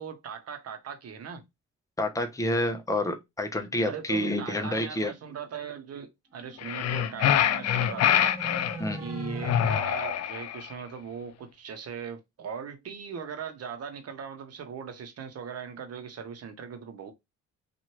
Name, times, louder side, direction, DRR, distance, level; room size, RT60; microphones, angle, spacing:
voice 1, 0.0-1.5 3.6-8.4 9.0-17.1, right 7 dB, 55° right, 0.9 m, -39 dB
voice 2, 2.0-5.1 8.8-9.0, left 1 dB, 10° left, 0.7 m, -28 dB
sound 1, 6.4-9.7, equal, 10° right, 1.2 m, -38 dB
sound 2, 6.6-8.8 9.4-10.7, left 10 dB, 60° left, 0.4 m, -25 dB
2.8 x 2.5 x 3.0 m
cardioid pair, 90°, 30 cm